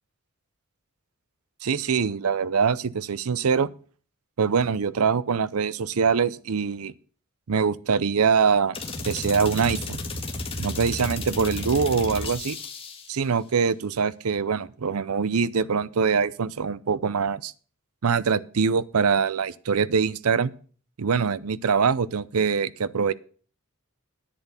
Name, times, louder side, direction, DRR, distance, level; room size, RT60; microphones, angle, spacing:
voice 1, 1.6-3.7 4.4-6.9 7.5-8.8 9.1-10.0 10.6-12.6 13.1-17.5 18.0-20.5 21.0-23.1, right 5 dB, 85° right, 0.6 m, -23 dB
sound 1, 8.7-13.2, left 2 dB, 25° left, 1.8 m, -33 dB
10.0 x 8.3 x 6.9 m
head